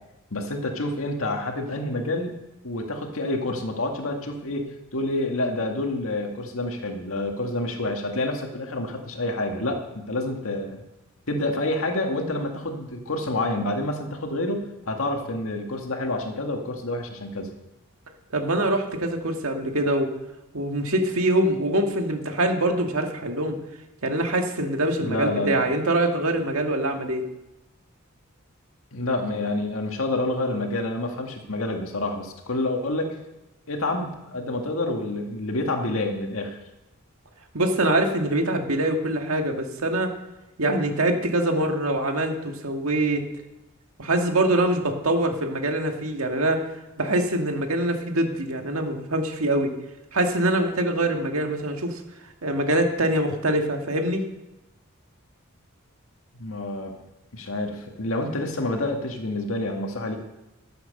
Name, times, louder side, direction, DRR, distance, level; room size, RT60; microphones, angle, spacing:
voice 1, 0.3-2.3 2.6-10.8 11.3-17.5 25.0-25.6 28.9-33.2 33.7-36.6 56.4-56.9 57.3-60.2, left 2 dB, 75° left, 3 dB, 1.8 m, -28 dB
voice 2, 18.3-20.1 20.5-23.6 24.0-27.2 37.5-40.1 40.6-43.2 44.0-46.6 47.0-49.7 50.1-52.0 52.4-54.2, right 1 dB, 80° right, 4 dB, 1.8 m, -24 dB
14.0 x 7.8 x 6.5 m, 0.97 s
head